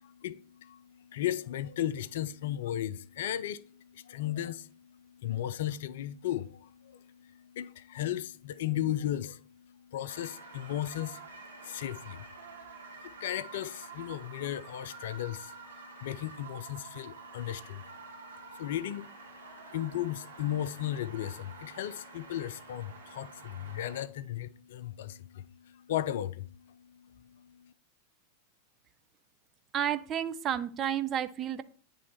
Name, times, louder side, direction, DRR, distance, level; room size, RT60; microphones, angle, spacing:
voice 1, 0.0-27.7, left 12 dB, 55° left, 0.4 m, -36 dB
sound 1, 10.1-24.0, right 4 dB, 75° right, 1.9 m, -49 dB
voice 2, 29.7-31.6, right 9 dB, 30° right, 0.5 m, -31 dB
9.4 x 3.1 x 4.2 m
figure-of-eight pair, 90°, 0 cm